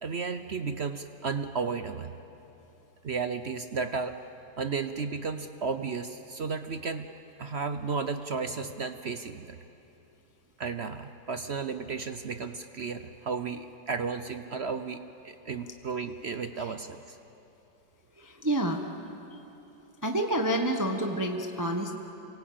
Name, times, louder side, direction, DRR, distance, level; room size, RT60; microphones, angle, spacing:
voice 1, 0.0-2.1 3.0-4.2 4.6-9.6 10.6-17.2, right 5 dB, 55° right, 9 dB, 0.7 m, -34 dB
voice 2, 18.2-18.8 20.0-21.9, right 1 dB, 10° right, 4 dB, 1.1 m, -28 dB
27.0 x 22.5 x 8.7 m, 3.0 s
omnidirectional pair, 2.0 m